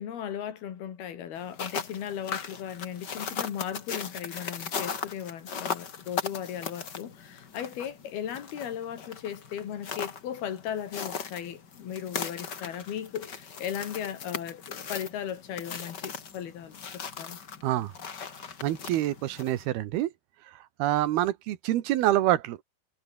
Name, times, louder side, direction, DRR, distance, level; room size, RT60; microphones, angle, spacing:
voice 1, 0.0-17.4, left 9 dB, 80° left, 4.4 m, -37 dB
sound 1, 1.4-19.6, left 6 dB, 35° left, 1.9 m, -38 dB
voice 2, 18.6-20.1 20.8-22.6, right 14 dB, 85° right, 3.2 m, -26 dB
omnidirectional pair, 4.4 m